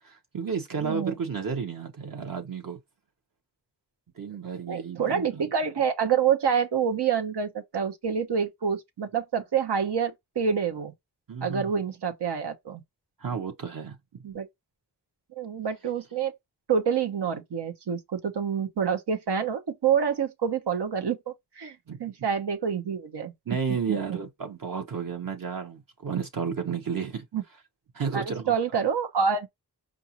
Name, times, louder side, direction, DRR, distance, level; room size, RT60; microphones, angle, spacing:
voice 1, 0.0-2.8 4.2-5.5 11.3-11.8 13.2-14.2 21.9-22.0 23.5-27.2 27.9-28.5, right 6 dB, 55° right, 0.8 m, -32 dB
voice 2, 0.8-1.1 4.7-10.9 11.4-12.8 14.2-14.5 15.4-16.3 16.7-23.3 23.9-24.0 27.3-27.4 28.1-29.5, right 7 dB, 85° right, 0.8 m, -27 dB
4.9 x 2.5 x 2.8 m
cardioid pair, 45°, 40 cm